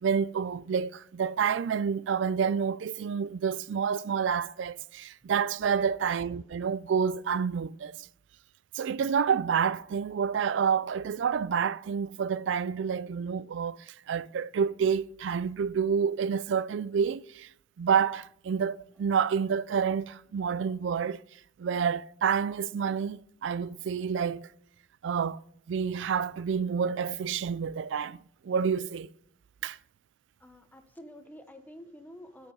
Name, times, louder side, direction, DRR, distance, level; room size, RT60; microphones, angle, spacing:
voice 1, 0.0-8.0 8.7-17.5 17.8-21.2 21.6-24.5 25.0-25.4 25.7-28.2 28.4-29.1 29.6-29.8, right 7 dB, 80° right, 0.4 m, -28 dB
voice 2, 30.4-32.5, equal, 10° left, 1.0 m, -49 dB
8.8 x 6.2 x 5.3 m
head